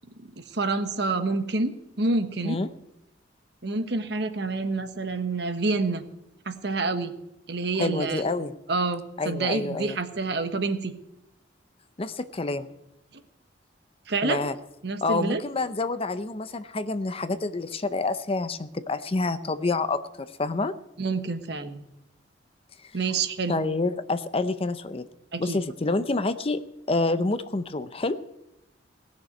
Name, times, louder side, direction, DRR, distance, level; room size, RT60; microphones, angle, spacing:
voice 1, 0.2-2.6 3.6-6.0 6.4-7.1 7.5-8.2 8.7-10.9 14.1-14.4 14.8-15.4 21.0-21.8 22.9-23.6 25.3-25.6, right 3 dB, 65° right, 8 dB, 1.2 m, -28 dB
voice 2, 7.8-8.5 9.2-10.0 12.0-12.7 14.2-14.5 15.0-20.7 23.5-25.1 25.4-26.6 26.9-28.2, left 3 dB, 30° left, 12 dB, 0.6 m, -28 dB
18.0 x 6.6 x 9.2 m, 0.90 s
head